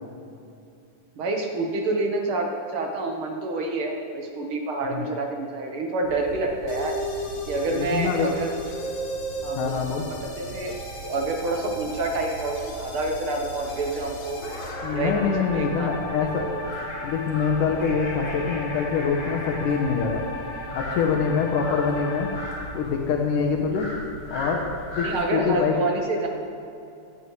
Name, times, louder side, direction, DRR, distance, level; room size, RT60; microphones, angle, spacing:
voice 1, 1.2-7.0 7.5-8.6 9.4-9.7 10.1-10.7 11.0-14.4 14.9-16.6 25.0-26.3, right 2 dB, 60° right, 2 dB, 1.5 m, -28 dB
sound 1, 6.0-25.3, right 1 dB, 10° left, 2.7 m, -39 dB
sound 2, 6.7-22.7, left 1 dB, 65° left, 3.4 m, -35 dB
voice 2, 7.7-8.3 9.6-10.1 14.8-16.5 17.0-20.2 20.7-22.3 22.7-23.9 24.3-24.6 24.9-25.1 25.3-25.8, left 6 dB, 90° left, 1 dB, 2.5 m, -25 dB
18.0 x 11.0 x 3.1 m, 2.6 s
omnidirectional pair, 3.6 m